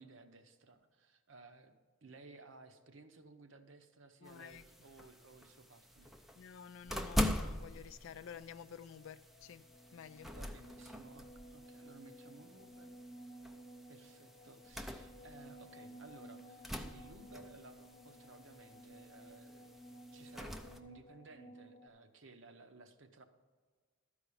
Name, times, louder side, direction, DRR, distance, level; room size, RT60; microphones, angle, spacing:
voice 1, 0.0-1.7 2.0-6.2 10.3-12.9 13.9-19.7 20.1-23.2, right 3 dB, 60° right, 0.8 m, -58 dB
voice 2, 4.2-4.6 6.4-10.4, left 7 dB, 65° left, 0.4 m, -51 dB
sound 1, 4.3-20.8, left 1 dB, ahead, 0.4 m, -44 dB
sound 2, 8.5-21.9, equal, 35° left, 0.9 m, -55 dB
12.5 x 4.9 x 6.9 m
head